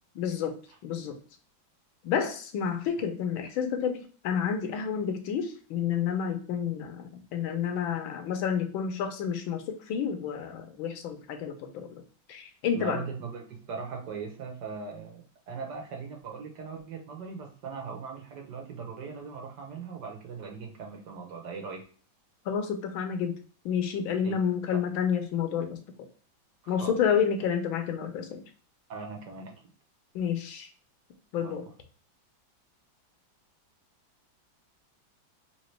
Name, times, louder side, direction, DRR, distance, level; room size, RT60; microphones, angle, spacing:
voice 1, 0.1-0.6 0.8-1.2 2.0-12.0 12.3-13.0 22.5-23.4 23.6-25.8 26.7-28.4 30.1-30.7 31.3-31.7, left 7 dB, 85° left, 6 dB, 1.5 m, -30 dB
voice 2, 12.7-21.8 24.2-24.4 24.7-24.8 26.6-27.0 28.9-29.5 31.4-31.6, right 5 dB, 65° right, 1 dB, 1.4 m, -39 dB
3.9 x 2.9 x 3.1 m, 0.41 s
omnidirectional pair, 2.2 m